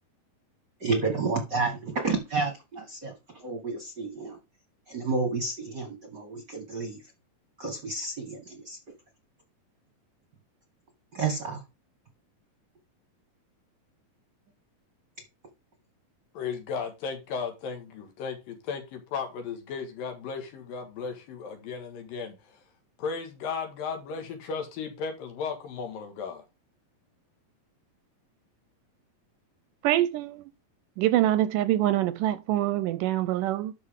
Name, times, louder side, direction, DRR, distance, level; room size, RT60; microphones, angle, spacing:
voice 1, 0.8-4.4 4.9-7.0 7.6-8.8 11.1-11.6, right 4 dB, 50° right, 1.3 m, -30 dB
voice 2, 16.4-22.6 23.0-26.4, left 5 dB, 80° left, 3.5 m, -35 dB
voice 3, 29.8-30.4 31.0-33.7, right 14 dB, 80° right, 2.0 m, -25 dB
12.0 x 5.2 x 3.6 m
omnidirectional pair, 4.0 m